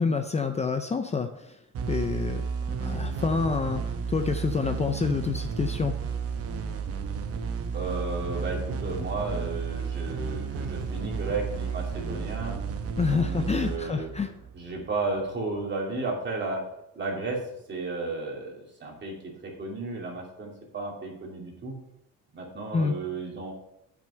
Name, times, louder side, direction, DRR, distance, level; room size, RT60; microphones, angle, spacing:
voice 1, 0.0-1.6 1.9-2.4 2.8-6.0 13.0-14.3 22.7-23.0, left 5 dB, 25° left, 7 dB, 0.5 m, -27 dB
sound 1, 1.7-15.1, right 6 dB, 55° right, 1.0 m, -32 dB
voice 2, 7.7-12.6 13.1-14.1 14.5-16.6 16.9-17.4 17.7-21.8 22.3-23.5, right 3 dB, 40° right, -1 dB, 2.9 m, -33 dB
9.0 x 6.2 x 5.7 m, 0.79 s
cardioid pair, 135°, 29 cm